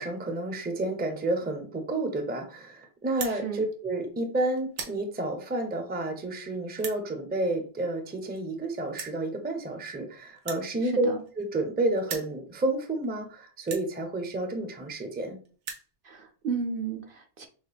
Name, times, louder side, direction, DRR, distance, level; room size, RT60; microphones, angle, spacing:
voice 1, 0.0-15.4, right 2 dB, 10° right, 5 dB, 0.5 m, -30 dB
sound 1, 3.1-3.4 4.1-4.3 4.6-5.0 5.7-5.8 6.7-7.0 8.1-8.2 8.4-8.5 8.9-9.2 10.4-11.7 12.0-12.3 13.0-13.1 13.6-13.9 14.8-14.9 15.1-15.2 15.5-15.9, right 6 dB, 85° right, 1.1 m, -38 dB
voice 2, 3.2-3.7 10.8-11.2 16.0-17.5, right 5 dB, 60° right, 4 dB, 0.7 m, -34 dB
6.2 x 2.1 x 3.4 m, 0.40 s
omnidirectional pair, 1.2 m